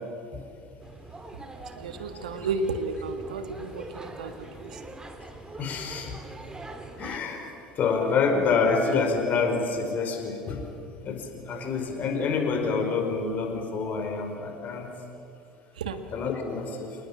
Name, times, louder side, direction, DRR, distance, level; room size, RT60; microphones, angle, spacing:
sound 1, 0.8-7.2, right 2 dB, 15° right, 2.8 m, -43 dB
voice 1, 1.6-4.3 4.6-4.8 15.8-16.0, right 3 dB, 75° right, 8 dB, 1.8 m, -32 dB
voice 2, 5.6-6.2 7.0-10.6 11.0-14.9 16.1-17.0, left 4 dB, 40° left, 4 dB, 5.0 m, -27 dB
27.5 x 20.0 x 8.8 m, 2.6 s
figure-of-eight pair, 65°, 4 cm